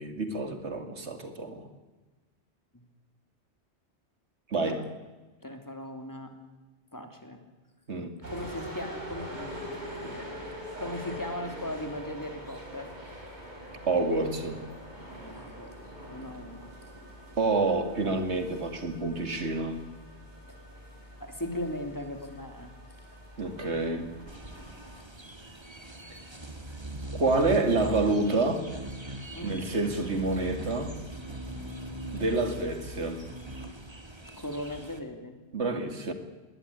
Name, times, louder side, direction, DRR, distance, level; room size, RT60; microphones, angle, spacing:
voice 1, 0.0-1.7 4.5-4.8 7.9-8.2 13.9-14.6 17.4-19.8 23.4-24.1 27.2-28.7 29.4-30.9 32.1-33.2 35.5-36.1, right 3 dB, 75° right, 7 dB, 2.6 m, -28 dB
voice 2, 5.4-6.3 6.9-7.4 8.3-9.6 10.0-10.4 10.8-12.9 15.2-15.7 16.1-16.7 20.5-20.6 21.2-22.7 29.3-29.6 34.4-35.3, left 1 dB, 15° left, 5 dB, 3.0 m, -38 dB
sound 1, 8.2-25.0, equal, 40° right, 4.4 m, -43 dB
sound 2, 24.3-35.0, right 1 dB, 25° right, 1.9 m, -41 dB
20.5 x 17.5 x 9.8 m, 1.2 s
omnidirectional pair, 1.1 m